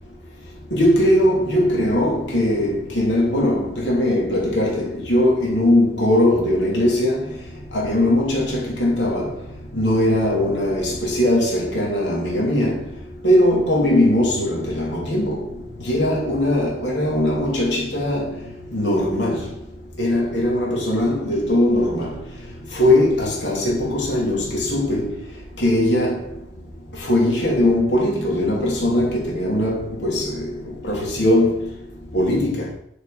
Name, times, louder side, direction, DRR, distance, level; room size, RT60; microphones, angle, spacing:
voice 1, 0.7-7.2 7.7-9.3 9.7-12.8 13.2-15.4 15.8-18.3 18.7-19.4 20.0-22.1 22.7-25.1 25.6-26.2 27.0-30.5 30.8-31.6 32.1-32.6, left 1 dB, 90° left, 3.1 m, -20 dB
10.5 x 6.7 x 5.0 m
head